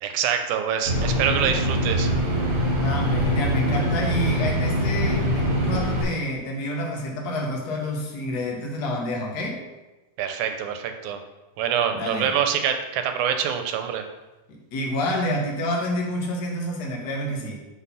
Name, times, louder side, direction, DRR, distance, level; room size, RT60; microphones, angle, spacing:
voice 1, 0.0-2.1 10.2-11.2 11.6-14.0, right 8 dB, 85° right, 6 dB, 2.0 m, -25 dB
sound 1, 0.9-6.0, equal, 50° right, 2.6 m, -23 dB
voice 2, 2.8-9.6 11.9-12.3 14.5-17.7, equal, 70° left, -1 dB, 0.9 m, -28 dB
5.5 x 4.0 x 5.7 m, 1.1 s
omnidirectional pair, 3.5 m